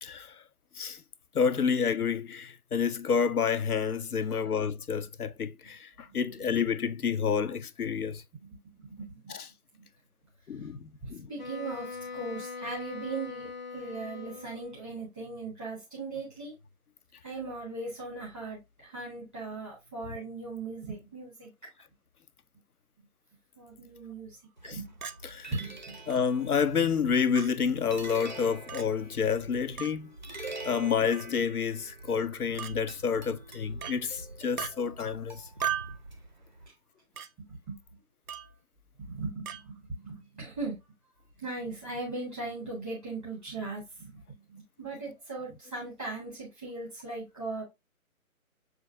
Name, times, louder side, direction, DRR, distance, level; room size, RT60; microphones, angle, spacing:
voice 1, 0.0-0.3 0.8-1.0 1.3-8.2 9.3-9.5 10.5-11.3 24.6-24.8 25.2-25.5 26.1-30.1 30.6-35.4, left 6 dB, 85° left, 0.6 m, -29 dB
voice 2, 8.8-9.3 9.8-9.9 11.0-16.5 17.2-21.5 23.6-24.3 24.7-24.9 25.5-25.9 37.7-37.8 39.0-40.8 41.4-44.2 44.5-47.6, right 3 dB, ahead, 0.8 m, -38 dB
Wind instrument woodwind instrument, 11.4-14.9, left 5 dB, 30° left, 0.6 m, -41 dB
sound 1, 24.6-36.7, right 2 dB, 35° right, 0.4 m, -45 dB
Chink clink, 25.0-25.2 26.1-26.2 27.3-27.5 28.7-28.8 29.8-29.9 31.1-31.3 32.6-32.7 33.8-34.0 34.6-34.7 35.6-36.0 37.2-37.3 38.3-38.5 39.5-39.6, right 9 dB, 85° right, 0.6 m, -35 dB
6.3 x 2.4 x 2.6 m
figure-of-eight pair, 140°, 43 cm